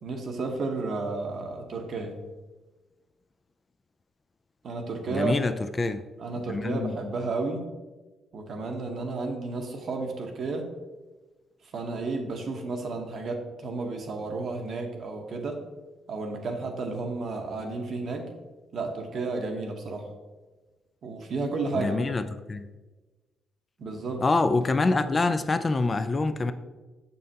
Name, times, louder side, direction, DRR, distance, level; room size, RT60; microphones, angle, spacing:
voice 1, 0.0-2.2 4.6-5.3 6.2-7.7 8.3-10.7 11.7-15.6 16.1-18.3 18.7-20.1 21.0-22.0 23.8-24.2, right 3 dB, 55° right, 3 dB, 0.9 m, -32 dB
voice 2, 5.1-6.1 6.5-7.0 21.7-22.6 24.2-26.5, left 3 dB, 30° left, 10 dB, 0.3 m, -26 dB
6.5 x 5.5 x 2.8 m, 1.2 s
cardioid pair, 90°, 0 cm